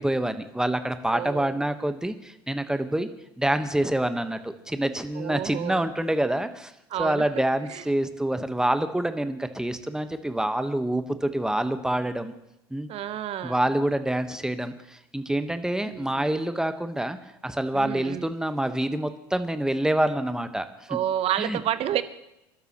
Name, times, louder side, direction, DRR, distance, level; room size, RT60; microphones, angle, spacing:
voice 1, 0.0-3.1 3.4-6.7 7.0-12.3 12.7-12.9 13.4-17.2 17.4-20.6 20.9-21.0 21.4-21.6, right 1 dB, 5° right, 9 dB, 1.3 m, -26 dB
voice 2, 1.1-1.6 5.1-5.9 6.9-7.2 7.7-7.8 12.9-13.6 15.8-16.3 17.7-18.3 20.9-22.0, right 11 dB, 50° right, 13 dB, 1.0 m, -30 dB
27.0 x 12.5 x 3.1 m, 0.85 s
hypercardioid pair, 70°, 13 cm